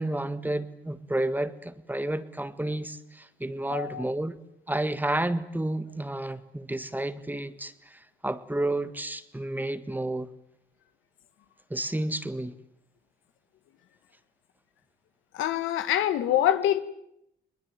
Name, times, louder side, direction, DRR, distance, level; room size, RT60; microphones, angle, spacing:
voice 1, 0.0-4.4 4.7-10.3 11.7-12.5, right 1 dB, 10° right, 1.6 m, -31 dB
voice 2, 3.7-4.0 15.3-16.8, left 11 dB, 85° left, 1.7 m, -25 dB
21.5 x 20.5 x 9.2 m
cardioid pair, 90°, 20 cm